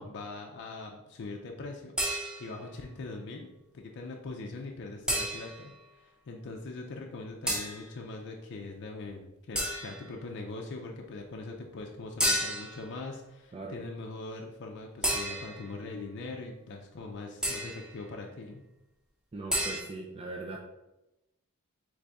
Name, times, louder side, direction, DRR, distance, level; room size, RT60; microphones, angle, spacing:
voice 1, 0.0-2.0 2.4-3.5 3.7-18.6, left 3 dB, 55° left, 1 dB, 0.5 m, -42 dB
sound 1, 2.0-2.7 5.1-5.7 7.5-7.8 9.5-10.1 12.2-12.8 15.0-15.7 17.4-17.9 19.5-19.8, equal, 5° right, 0.8 m, -31 dB
voice 2, 19.3-20.6, right 2 dB, 25° right, 0 dB, 0.4 m, -40 dB
3.9 x 3.2 x 3.4 m, 0.93 s
head